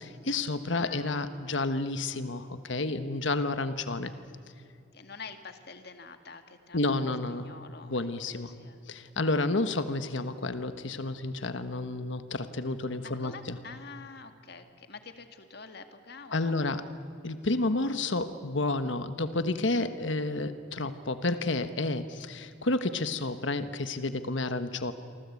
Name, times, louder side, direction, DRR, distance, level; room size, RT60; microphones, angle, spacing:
voice 1, 0.0-4.1 6.7-7.5 7.8-8.5 8.9-13.6 16.3-16.9 17.2-24.9, left 2 dB, 70° left, 10 dB, 1.3 m, -30 dB
voice 2, 0.8-1.3 4.9-8.9 13.2-16.6, left 4 dB, 55° left, 7 dB, 2.1 m, -47 dB
28.5 x 24.0 x 8.5 m, 2.4 s
head